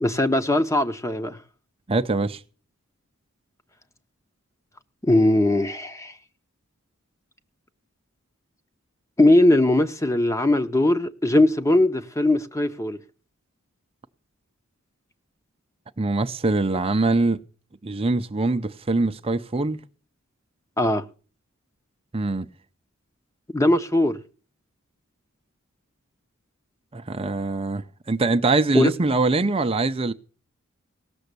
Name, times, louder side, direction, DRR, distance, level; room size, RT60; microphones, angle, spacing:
voice 1, 0.0-1.4 5.0-6.1 9.2-13.0 20.8-21.0 23.5-24.2 28.7-28.9, left 1 dB, 15° left, 0.8 m, -20 dB
voice 2, 1.9-2.4 16.0-17.4 17.8-19.8 22.1-22.5 26.9-30.1, right 3 dB, 25° right, 0.6 m, -23 dB
18.0 x 7.0 x 6.8 m
head